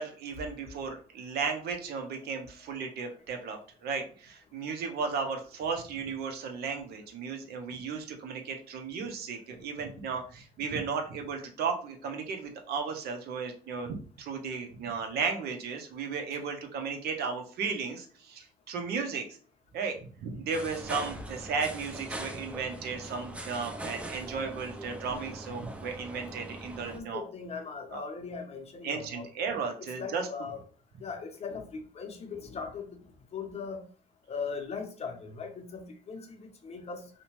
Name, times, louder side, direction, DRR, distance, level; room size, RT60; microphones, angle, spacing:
voice 1, 0.0-19.2 19.7-27.2 27.9-28.0 28.8-30.3, right 5 dB, 70° right, 4 dB, 0.7 m, -35 dB
sound 1, 20.5-27.0, right 1 dB, 5° right, 0.4 m, -41 dB
voice 2, 26.8-29.3 29.8-30.6 31.0-33.0 33.3-33.9 34.3-37.1, left 5 dB, 40° left, 5 dB, 0.6 m, -39 dB
2.7 x 2.1 x 2.9 m, 0.41 s
cardioid pair, 110°, 17 cm